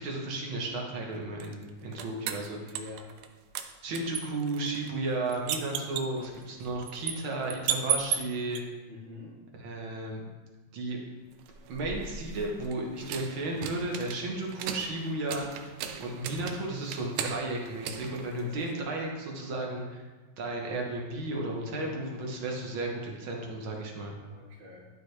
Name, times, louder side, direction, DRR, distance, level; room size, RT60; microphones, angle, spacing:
voice 1, 0.0-2.6 3.8-8.6 9.6-10.2 10.7-11.0 11.7-15.5 16.0-20.0 20.4-24.2, right 2 dB, 70° right, 0 dB, 2.0 m, -34 dB
sound 1, 1.4-3.3 3.6-8.6 11.4-18.9, right 8 dB, 90° right, 1.5 m, -36 dB
voice 2, 1.8-2.1 2.4-3.1 8.9-9.4 24.2-24.9, left 3 dB, 25° right, -7 dB, 1.9 m, -47 dB
11.5 x 4.7 x 3.2 m, 1.3 s
omnidirectional pair, 2.3 m